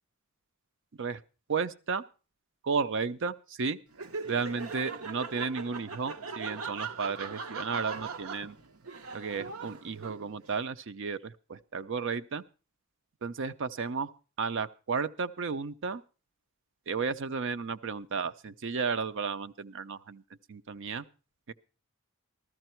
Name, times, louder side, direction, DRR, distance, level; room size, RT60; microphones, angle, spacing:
voice 1, 1.5-2.0 2.6-3.8 4.3-8.6 9.1-12.4 13.2-14.1 14.4-16.0 16.9-20.2 20.5-21.0 21.5-21.6, right 5 dB, 60° right, 13 dB, 0.6 m, -33 dB
Laughter, 3.9-10.5, right 4 dB, 80° right, 0.9 m, -40 dB
14.0 x 13.5 x 4.5 m, 0.35 s
head